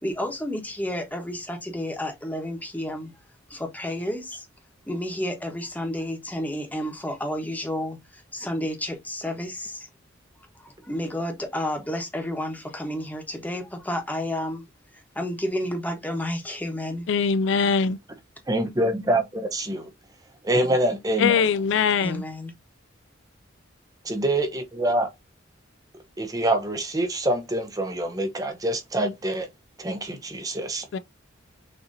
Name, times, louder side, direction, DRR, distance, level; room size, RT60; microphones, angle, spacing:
voice 1, 0.0-3.1 3.5-4.5 4.9-9.9 10.6-14.7 14.9-17.1 20.6-20.8 22.0-22.5, left 1 dB, 10° left, 1.1 m, -31 dB
voice 2, 17.1-18.0 21.2-22.2 30.9-31.0, left 6 dB, 60° left, 0.3 m, -22 dB
voice 3, 18.5-19.9 20.4-21.4 24.0-25.1 26.2-29.5 29.8-30.9, right 1 dB, 20° right, 0.6 m, -25 dB
6.4 x 2.9 x 2.6 m
head